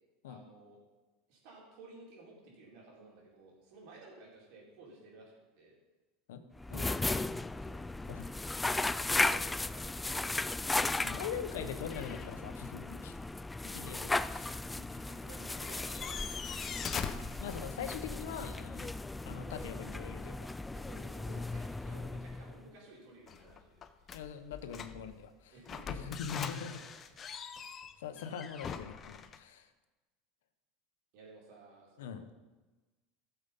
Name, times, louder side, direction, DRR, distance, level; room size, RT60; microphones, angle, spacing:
voice 1, 0.3-0.8 1.3-5.8 6.8-7.8 8.7-10.4 10.9-11.7 13.8-14.2 14.7-16.8 20.7-24.1 25.5-26.0 31.1-32.2, right 3 dB, 65° right, -3 dB, 4.7 m, -55 dB
sound 1, 6.6-22.7, left 2 dB, 10° left, 0.3 m, -36 dB
voice 2, 10.7-13.2 13.7-14.5 17.4-18.9 19.2-20.5 21.2-21.4 24.1-25.5 26.0-26.8 28.0-29.7 32.0-32.2, left 7 dB, 85° left, 9 dB, 1.1 m, -42 dB
sound 2, 11.9-12.7 13.0-13.1 15.2-15.3 15.5-18.1 23.3-25.2 25.7-29.4, left 6 dB, 30° left, 0.8 m, -42 dB
14.5 x 7.2 x 5.5 m, 1.2 s
supercardioid pair, 110°, 0 cm